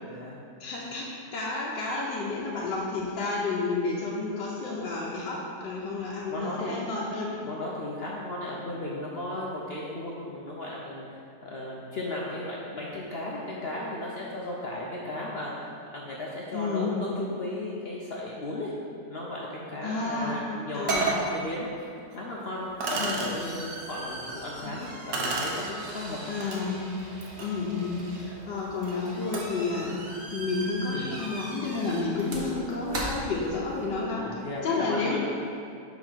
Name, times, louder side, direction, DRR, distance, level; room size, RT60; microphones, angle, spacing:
voice 1, 0.0-0.4 6.3-6.9 7.4-11.1 11.4-15.5 15.9-18.7 19.1-21.7 22.1-26.2 30.9-31.1 34.2-35.2, left 1 dB, 60° left, -4 dB, 0.6 m, -35 dB
voice 2, 0.6-7.4 16.5-16.9 19.8-21.2 23.0-23.2 24.6-24.8 26.3-26.8 27.4-30.0 30.3-34.3 34.6-35.2, left 3 dB, 75° left, -5 dB, 1.4 m, -31 dB
sound 1, 20.3-20.4 20.9-21.3 22.1-22.2 22.8-23.3 25.1-25.7 26.4-26.6 27.1-29.7, right 3 dB, 75° right, 1.6 m, -32 dB
sound 2, 22.5-34.0, right 1 dB, 40° right, 1.0 m, -41 dB
5.4 x 4.8 x 6.0 m, 2.5 s
omnidirectional pair, 1.9 m